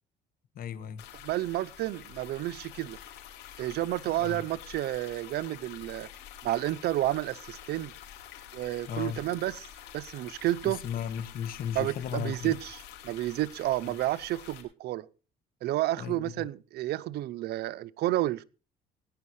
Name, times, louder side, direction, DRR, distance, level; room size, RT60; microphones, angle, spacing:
voice 1, 0.5-1.1 4.2-4.4 8.9-9.2 10.6-12.6 13.8-13.9 16.0-16.5, left 8 dB, 60° left, 1.5 m, -36 dB
sound 1, 1.0-14.6, left 10 dB, 85° left, 4.7 m, -48 dB
voice 2, 1.2-3.0 3.6-6.1 6.4-7.9 8.5-9.7 9.9-10.8 11.8-12.8 13.0-15.1 15.6-18.4, right 15 dB, 75° right, 0.6 m, -30 dB
20.5 x 10.5 x 3.2 m
cardioid pair, 110°, 17 cm